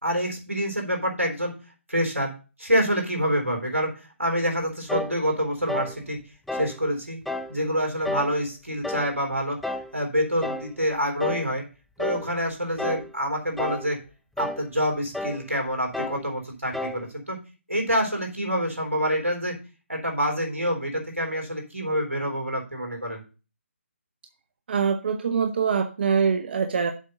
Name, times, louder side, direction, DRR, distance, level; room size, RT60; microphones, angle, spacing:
voice 1, 0.0-1.5 1.9-2.3 2.6-3.9 4.2-6.2 6.5-7.2 7.5-9.6 9.9-11.6 12.0-14.0 14.4-17.4 17.7-19.5 19.9-23.2, equal, 90° right, 2 dB, 3.8 m, -26 dB
sound 1, 4.9-5.2 5.7-6.0 6.5-6.8 7.3-7.5 8.0-8.4 8.8-9.1 9.6-9.9 10.4-10.7 11.2-11.5 12.0-12.3 12.8-13.1 13.6-13.9 14.4-14.6 15.1-15.4 15.9-16.2 16.7-17.0, left 2 dB, ahead, 0.3 m, -31 dB
voice 2, 24.7-26.9, right 6 dB, 50° right, 8 dB, 0.8 m, -24 dB
7.4 x 5.2 x 6.6 m, 0.34 s
figure-of-eight pair, 145°, 7 cm